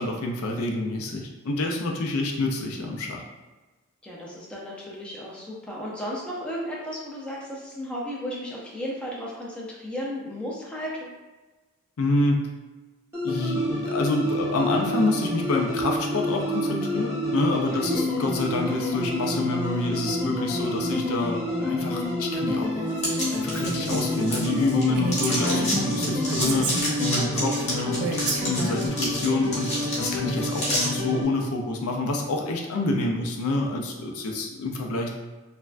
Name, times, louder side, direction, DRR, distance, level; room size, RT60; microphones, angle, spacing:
voice 1, 0.0-3.2 12.0-12.4 13.2-22.9 23.1-29.7 30.0-35.1, left 2 dB, 75° left, 1 dB, 0.5 m, -27 dB
voice 2, 4.0-11.1 17.7-18.0 27.3-27.4, equal, 5° left, -5 dB, 0.4 m, -34 dB
sound 1, 13.1-31.2, left 1 dB, 10° right, 0.8 m, -29 dB
sound 2, 23.0-24.8 25.1-30.9, left 1 dB, 30° left, 0.9 m, -30 dB
Female speech woman speaking, 23.5-24.1 24.5-24.6 24.9-27.2 28.0-28.9, right 2 dB, 75° right, 0.4 m, -30 dB
3.2 x 2.1 x 2.5 m, 1.2 s
head